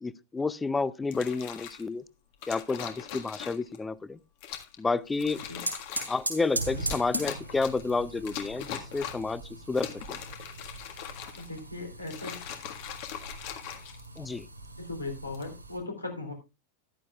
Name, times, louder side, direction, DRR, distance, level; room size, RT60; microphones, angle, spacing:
voice 1, 0.0-2.0 2.5-4.2 4.8-5.4 6.1-10.2 14.2-14.5, left 4 dB, 10° left, 0.5 m, -30 dB
sound 1, 1.0-1.8 2.4-3.8 4.4-4.8 5.1-6.3 6.8-7.9 8.3-9.3 9.7-11.6 12.0-14.4 15.2-15.5, left 10 dB, 45° left, 1.6 m, -40 dB
sound 2, 5.2-15.8, right 2 dB, 80° right, 3.4 m, -40 dB
voice 2, 11.4-12.4 14.8-16.3, left 2 dB, 85° left, 3.3 m, -38 dB
14.0 x 11.5 x 2.4 m
figure-of-eight pair, 90°, 0 cm